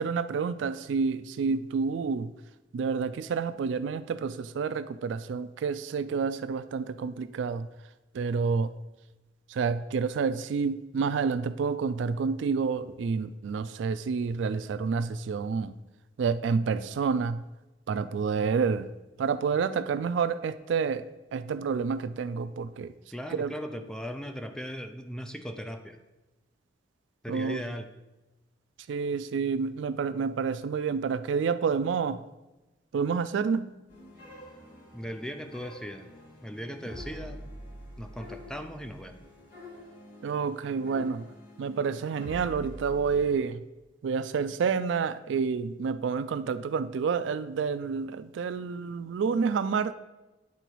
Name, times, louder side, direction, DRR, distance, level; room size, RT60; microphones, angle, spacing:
voice 1, 0.0-2.3 2.7-7.7 8.1-8.7 9.5-15.7 16.2-17.4 17.9-18.9 19.2-21.0 21.3-22.9 23.3-23.5 27.3-27.6 28.9-32.2 32.9-33.7 40.2-41.2 41.6-43.6 44.0-49.9, right 5 dB, 75° right, 13 dB, 0.3 m, -29 dB
voice 2, 23.1-26.0 27.2-27.9 34.9-36.1 36.4-37.4 38.0-39.2, equal, 5° left, 6 dB, 0.4 m, -38 dB
sound 1, 33.9-43.3, equal, 50° left, 2.5 m, -46 dB
9.5 x 3.9 x 4.6 m, 1.1 s
head